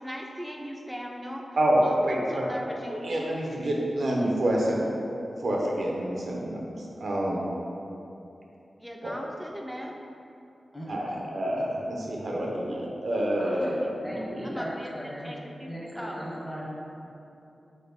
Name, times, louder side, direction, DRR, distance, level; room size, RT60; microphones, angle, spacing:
voice 1, 0.0-3.4 8.8-9.9 13.6-14.1 14.4-14.9 15.2-16.2, equal, 5° right, 0 dB, 0.5 m, -39 dB
voice 2, 1.6-2.6 2.9-5.1 5.4-7.4 9.0-9.1 10.9-14.6, right 1 dB, 70° right, -2 dB, 0.7 m, -28 dB
voice 3, 10.7-11.2 13.4-13.7 14.0-15.3 15.6-16.7, equal, 25° left, -5 dB, 1.1 m, -38 dB
3.9 x 3.8 x 3.5 m, 2.8 s
wide cardioid pair, 65°, 0 cm